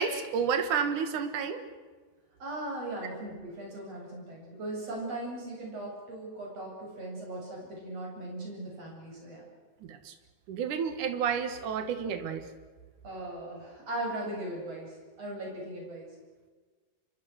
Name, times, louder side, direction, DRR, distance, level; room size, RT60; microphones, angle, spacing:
voice 1, 0.0-1.6 9.9-10.1 10.5-12.5, right 6 dB, 85° right, 8 dB, 3.1 m, -30 dB
voice 2, 2.4-9.5 13.0-16.1, right 1 dB, 55° right, -2 dB, 9.1 m, -38 dB
27.0 x 23.5 x 6.4 m, 1.4 s
omnidirectional pair, 3.5 m